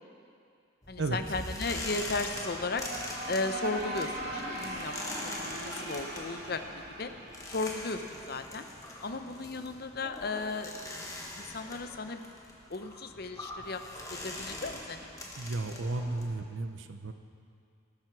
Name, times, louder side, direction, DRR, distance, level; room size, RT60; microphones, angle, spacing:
sound 1, 0.8-16.3, left 1 dB, 15° left, 1.4 m, -43 dB
voice 1, 0.9-2.8 3.3-7.1 7.5-8.7 9.0-10.7 11.0-12.2 12.7-13.8 14.1-15.1, left 3 dB, 50° left, 8 dB, 0.7 m, -35 dB
sound 2, 2.0-8.8, right 1 dB, 50° right, 2.3 m, -40 dB
voice 2, 15.4-17.1, right 2 dB, 70° right, 7 dB, 0.7 m, -33 dB
18.5 x 12.0 x 4.7 m, 2.4 s
head